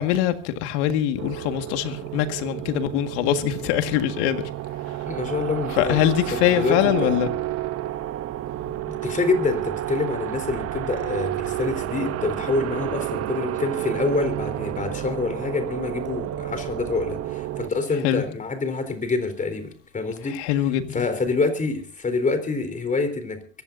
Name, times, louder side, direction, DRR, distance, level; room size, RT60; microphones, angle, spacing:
voice 1, 0.0-4.4 5.8-7.3 18.0-18.2 20.3-21.0, left 11 dB, 80° left, 1.9 m, -23 dB
sound 1, 1.2-17.7, right 13 dB, 45° right, 1.0 m, -30 dB
voice 2, 5.1-6.0 6.3-7.2 8.7-20.4 20.9-23.6, left 3 dB, 20° left, 3.9 m, -26 dB
23.5 x 16.0 x 2.7 m
supercardioid pair, 105°, 34 cm